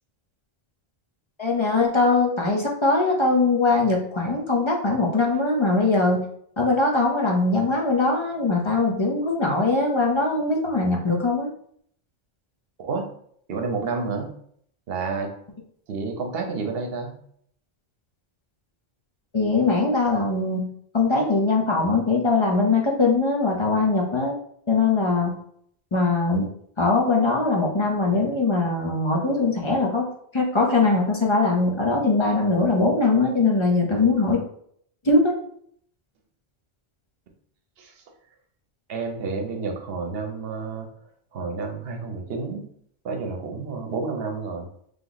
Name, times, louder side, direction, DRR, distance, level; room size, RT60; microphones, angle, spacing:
voice 1, 1.4-6.3 6.6-11.5 19.3-24.3 24.7-25.4 25.9-26.5 26.8-34.4 35.0-35.3, left 3 dB, 30° left, 0 dB, 0.7 m, -21 dB
voice 2, 13.5-14.3 14.9-15.3 15.9-17.1 37.8-37.9 38.9-40.9 41.3-42.7 43.0-44.7, right 4 dB, 70° right, 4 dB, 1.0 m, -30 dB
3.4 x 2.9 x 3.9 m, 0.65 s
omnidirectional pair, 1.1 m